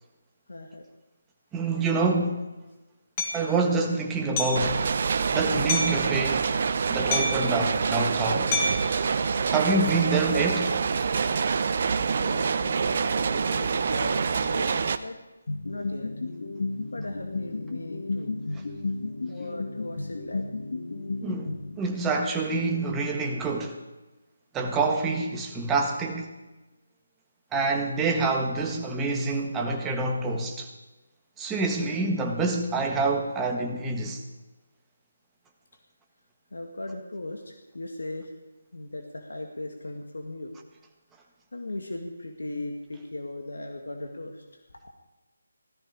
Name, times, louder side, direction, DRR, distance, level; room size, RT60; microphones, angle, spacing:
voice 1, 0.5-0.9 12.2-15.2 15.6-16.1 16.9-18.3 19.3-20.4 36.5-38.3 38.7-40.5 41.5-44.4, left 2 dB, 80° left, 2.1 m, -38 dB
voice 2, 1.5-2.5 3.3-4.8 5.3-6.5 6.9-8.5 9.5-10.7 21.2-21.5 21.8-23.8 24.5-26.3 27.5-30.7 31.4-34.2, right 3 dB, 10° right, 1.6 m, -26 dB
Hammer, 3.2-3.4 4.4-4.7 5.7-6.0 7.1-7.5 8.5-8.9, left 3 dB, 25° left, 2.1 m, -27 dB
sound 1, 4.6-15.0, right 5 dB, 45° right, 0.8 m, -26 dB
sound 2, 15.5-22.2, left 3 dB, 65° left, 1.8 m, -33 dB
17.0 x 14.0 x 5.0 m
figure-of-eight pair, 160°, 0 cm